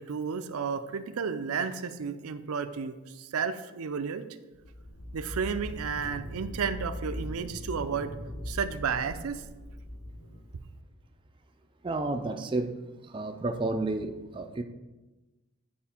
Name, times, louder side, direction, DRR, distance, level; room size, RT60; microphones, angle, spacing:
voice 1, 0.0-4.2 5.1-8.1 8.5-9.4, right 6 dB, 80° right, 10 dB, 0.5 m, -32 dB
sound 1, 4.5-10.9, equal, 85° left, 1.2 m, -40 dB
voice 2, 11.8-12.7 13.0-14.6, right 2 dB, 20° right, 5 dB, 0.4 m, -31 dB
9.3 x 4.3 x 4.3 m, 1.1 s
head